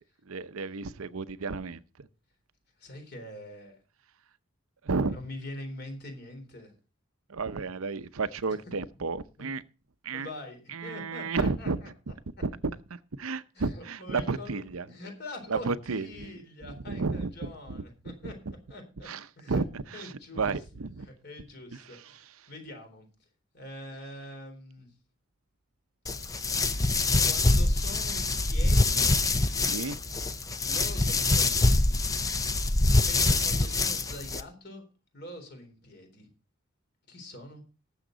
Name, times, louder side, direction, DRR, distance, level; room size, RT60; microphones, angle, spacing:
voice 1, 0.3-1.8 4.8-5.2 7.3-9.6 10.0-10.3 10.7-11.8 12.4-12.5 12.9-14.8 15.5-16.4 16.9-18.3 19.1-21.1 21.9-22.2 29.6-30.0, right 4 dB, 85° right, 0.7 m, -32 dB
voice 2, 2.8-3.8 5.1-6.7 8.5-8.6 9.4-9.5 10.1-11.9 13.5-18.4 18.7-19.1 19.4-19.6 19.9-20.5 21.0-23.1 23.5-24.9 27.2-29.1 30.6-32.0 33.0-34.8 35.1-36.3 37.1-37.6, left 1 dB, 50° left, 3.9 m, -44 dB
sound 1, 26.1-34.4, left 2 dB, 15° left, 0.5 m, -25 dB
18.5 x 7.3 x 3.9 m
head